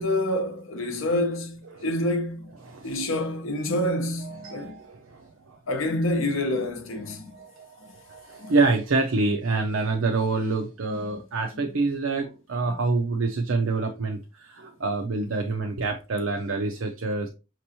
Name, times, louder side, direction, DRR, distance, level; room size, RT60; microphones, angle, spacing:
voice 1, 0.0-2.5 2.8-4.8 5.7-7.3 8.4-8.5 11.0-11.2 11.6-11.8 12.7-12.8, left 1 dB, 65° left, 0.8 m, -28 dB
voice 2, 2.6-3.1 4.2-5.6 7.3-17.3, right 3 dB, 70° right, 0.5 m, -27 dB
5.3 x 2.9 x 2.8 m
head